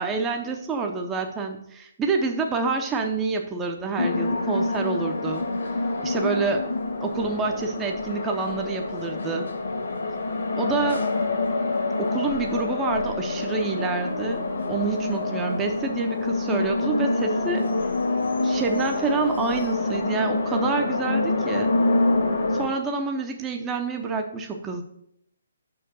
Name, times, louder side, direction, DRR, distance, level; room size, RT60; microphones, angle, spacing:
voice 1, 0.0-5.5 6.0-6.7 7.0-9.5 10.6-11.1 12.0-14.4 14.7-17.7 18.4-21.7 22.5-24.8, right 4 dB, 15° right, 3 dB, 0.6 m, -27 dB
sound 1, 4.0-22.7, left 2 dB, 65° left, 1.5 m, -26 dB
5.8 x 4.7 x 6.3 m, 0.76 s
figure-of-eight pair, 135°, 0 cm